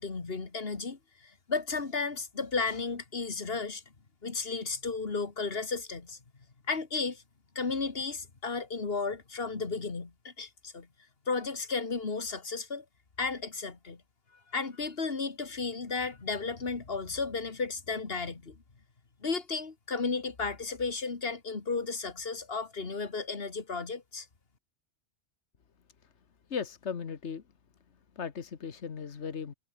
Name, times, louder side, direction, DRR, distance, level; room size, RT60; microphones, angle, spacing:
voice 1, 0.0-3.8 4.2-6.2 6.7-7.2 7.6-10.9 11.3-12.8 13.2-14.0 14.5-18.6 19.2-24.3, left 4 dB, 60° left, 2.4 m, -34 dB
voice 2, 26.5-27.4 28.1-29.5, left 6 dB, 80° left, 1.7 m, -37 dB
omnidirectional pair, 1.2 m